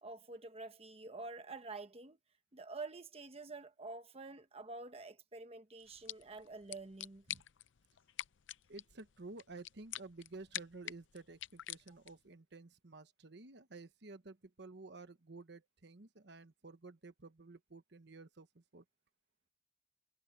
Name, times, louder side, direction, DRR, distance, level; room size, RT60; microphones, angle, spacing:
voice 1, 0.0-2.2 2.5-7.3, right 3 dB, 30° right, 1.1 m, -48 dB
sound 1, 5.8-12.3, left 13 dB, 85° left, 0.5 m, -48 dB
voice 2, 8.7-18.8, right 3 dB, 65° right, 1.1 m, -53 dB
head